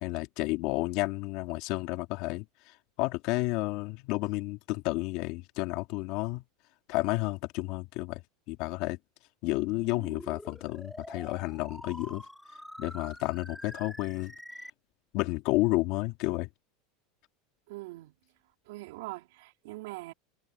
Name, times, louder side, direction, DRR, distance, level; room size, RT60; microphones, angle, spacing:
voice 1, 0.0-6.4 6.9-8.2 8.5-9.0 9.4-12.3 12.8-14.3 15.1-16.5, left 22 dB, 60° left, 2.6 m, -31 dB
sound 1, 9.7-14.7, left 1 dB, ahead, 4.1 m, -46 dB
voice 2, 17.7-18.2 18.7-20.1, right 20 dB, 75° right, 4.3 m, -42 dB
supercardioid pair, 125°, 0 cm